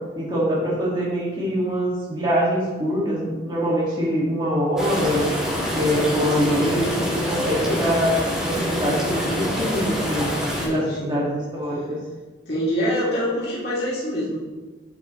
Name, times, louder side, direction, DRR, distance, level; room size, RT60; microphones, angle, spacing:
voice 1, 0.2-5.3 5.7-10.3 10.7-12.0, equal, 25° right, -7 dB, 2.0 m, -24 dB
sound 1, 4.8-10.7, equal, 5° right, 2.6 m, -26 dB
voice 2, 10.6-11.2 12.5-14.4, equal, 60° left, -8 dB, 2.4 m, -25 dB
8.2 x 7.2 x 3.1 m, 1.2 s
head